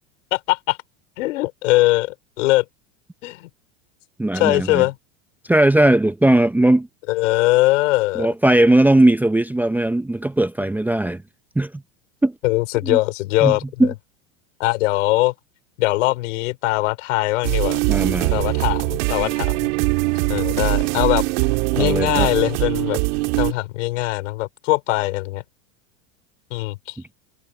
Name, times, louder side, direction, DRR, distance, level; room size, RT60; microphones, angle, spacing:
voice 1, 0.3-0.8 1.2-2.6 3.2-3.5 4.3-4.9 7.1-8.3 12.4-13.9 14.6-15.3 15.8-17.8 18.3-19.6 20.3-21.2 21.7-23.0 23.4-25.4 26.5-27.0, left 20 dB, 75° left, 4.7 m, -21 dB
voice 2, 4.2-4.8 5.5-6.9 8.2-11.2 11.6-11.7 12.2-12.3 12.8-13.0 13.4-13.9 17.9-18.3 21.7-22.3, right 1 dB, 5° right, 0.8 m, -18 dB
sound 1, 17.4-23.5, right 27 dB, 65° right, 2.4 m, -21 dB
supercardioid pair, 115°, 37 cm